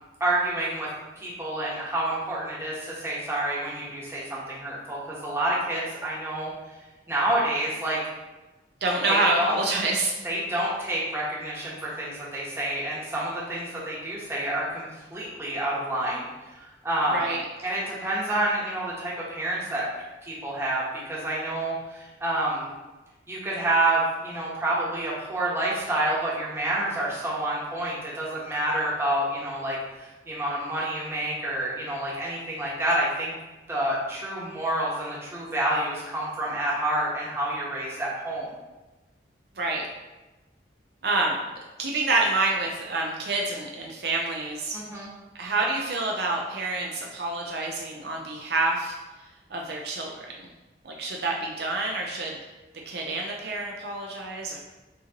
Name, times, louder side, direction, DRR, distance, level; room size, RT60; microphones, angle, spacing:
voice 1, 0.2-0.9 1.2-6.5 7.1-8.0 9.1-9.5 10.2-14.8 15.1-16.3 16.6-17.3 17.6-19.8 20.2-22.7 23.3-33.3 33.7-38.5 44.7-45.1, right 1 dB, 15° right, -6 dB, 1.0 m, -28 dB
voice 2, 8.8-10.1 17.1-17.4 39.6-39.9 41.0-41.4 41.8-44.8 45.4-49.0 49.5-50.4 50.8-52.4 52.9-54.6, right 2 dB, 60° right, 0 dB, 0.5 m, -27 dB
6.0 x 2.9 x 2.9 m, 1.1 s
head